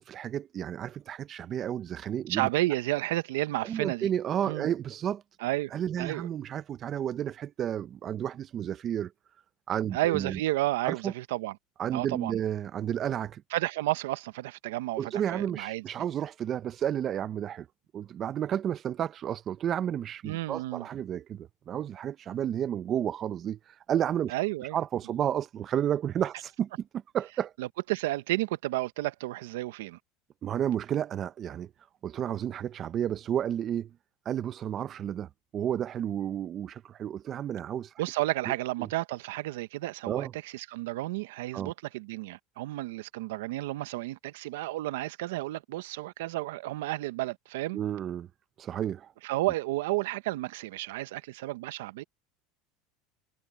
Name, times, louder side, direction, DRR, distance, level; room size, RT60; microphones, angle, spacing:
voice 1, 0.0-2.5 3.6-5.2 5.7-9.1 9.7-10.4 10.8-11.1 11.8-13.4 15.0-17.7 17.9-24.3 24.7-26.9 27.1-27.5 30.4-31.7 32.0-33.9 34.2-37.9 38.8-38.9 40.1-40.3 41.5-41.7 47.7-48.3 48.6-49.1, right 10 dB, 40° right, 0.8 m, -31 dB
voice 2, 2.3-4.1 4.5-4.7 5.4-5.7 6.0-6.3 9.9-11.5 11.9-12.4 13.5-15.8 20.2-20.9 24.3-24.8 27.6-30.0 38.0-47.8 49.2-52.0, right 17 dB, 85° right, 1.0 m, -32 dB
supercardioid pair, 110°, 0 cm